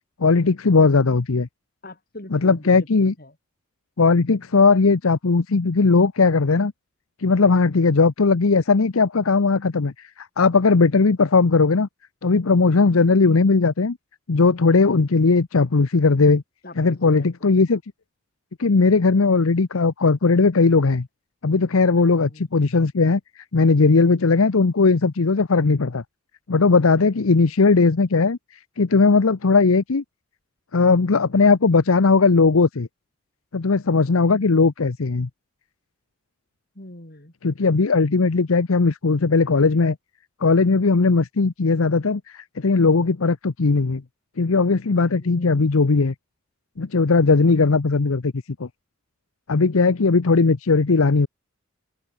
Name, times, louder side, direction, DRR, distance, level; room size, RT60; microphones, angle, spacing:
voice 1, 0.2-1.5 2.3-3.1 4.0-6.7 7.2-9.9 10.2-11.9 12.2-14.0 14.3-16.4 16.8-17.8 18.6-21.1 21.4-23.2 23.5-26.0 26.5-28.4 28.8-30.0 30.7-32.9 33.5-35.3 37.4-40.0 40.4-44.0 44.4-46.1 46.8-48.3 48.6-48.7 49.5-51.3, left 4 dB, 85° left, 0.8 m, -18 dB
voice 2, 1.8-3.4 16.6-17.7 22.0-22.5 27.0-27.5 36.8-37.3 45.1-45.6, left 1 dB, 45° left, 3.4 m, -42 dB
head